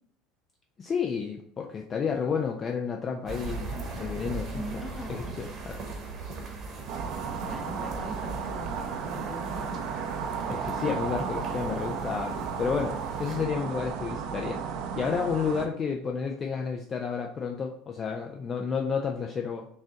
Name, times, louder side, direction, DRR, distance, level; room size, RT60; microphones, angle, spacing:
voice 1, 0.8-4.8 5.1-5.8 10.5-14.6 15.0-19.7, left 6 dB, 35° left, 2 dB, 0.4 m, -31 dB
sound 1, 3.3-13.4, right 3 dB, 40° right, 1.0 m, -39 dB
voice 2, 4.5-5.7 7.4-9.8 10.8-11.0, left 1 dB, 15° left, 3 dB, 1.0 m, -41 dB
sound 2, 6.9-15.7, right 6 dB, 60° right, 0.5 m, -34 dB
3.9 x 2.5 x 3.8 m, 0.64 s
hypercardioid pair, 75°, 0 cm